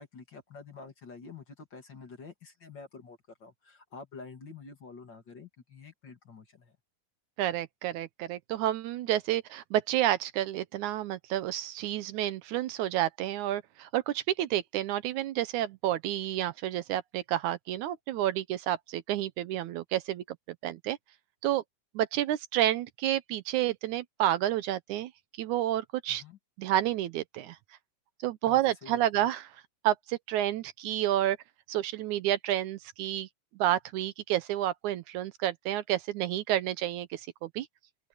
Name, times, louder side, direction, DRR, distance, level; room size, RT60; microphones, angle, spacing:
voice 1, 0.0-6.8 26.1-26.4 28.4-29.3, left 4 dB, 40° left, 2.4 m, -48 dB
voice 2, 7.4-20.4 20.6-21.0 21.4-21.6 22.0-25.1 25.4-26.2 26.6-27.6 28.2-29.4 29.8-31.4 31.7-33.3 33.6-37.7, right 13 dB, 80° right, 2.1 m, -30 dB
open air
omnidirectional pair, 3.6 m